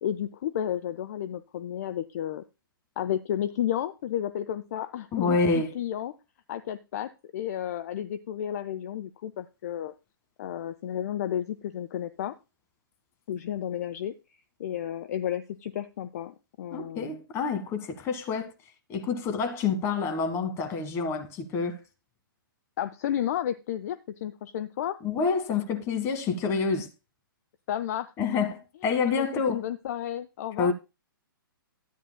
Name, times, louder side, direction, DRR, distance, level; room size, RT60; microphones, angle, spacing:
voice 1, 0.0-2.4 3.0-5.4 5.7-6.1 6.5-9.9 10.4-12.3 13.3-14.1 14.6-17.2 22.8-25.0 27.7-28.1 29.2-30.7, left 10 dB, 45° left, 0.5 m, -32 dB
voice 2, 5.1-5.7 16.7-18.5 18.9-21.8 25.0-26.9 28.2-29.6 30.6-30.7, left 5 dB, 20° left, 1.4 m, -28 dB
13.0 x 9.1 x 2.2 m
figure-of-eight pair, 120°, 12 cm